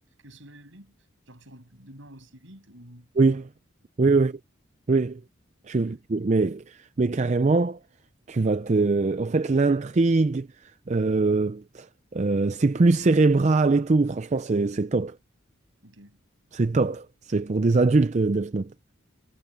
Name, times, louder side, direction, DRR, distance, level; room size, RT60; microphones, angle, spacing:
voice 1, 0.2-0.9 1.3-3.1 4.2-4.3 5.8-6.0 15.8-16.2, right 1 dB, 65° right, 7.6 m, -49 dB
voice 2, 3.2-3.5 4.0-4.4 4.9-5.2 5.7-7.8 8.3-10.5 10.9-11.9 12.1-15.2 16.5-18.7, right 3 dB, 35° right, 0.4 m, -22 dB
head